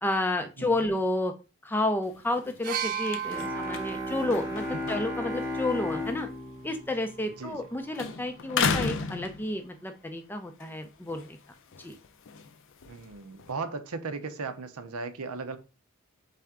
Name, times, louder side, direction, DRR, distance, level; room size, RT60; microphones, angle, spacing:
voice 1, 0.0-1.3 1.6-6.3 6.6-11.4 11.8-12.0, left 1 dB, 10° left, 0.4 m, -31 dB
sound 1, 2.0-7.7 7.9-10.0 10.4-13.5, left 5 dB, 60° left, 0.5 m, -36 dB
sound 2, 2.6-6.4 7.5-7.6, right 9 dB, 40° right, 0.6 m, -37 dB
Bowed string instrument, 3.2-8.1, left 2 dB, 10° right, 0.9 m, -35 dB
voice 2, 7.3-7.6 12.9-15.6, right 4 dB, 85° right, 0.7 m, -37 dB
4.2 x 3.4 x 3.6 m
head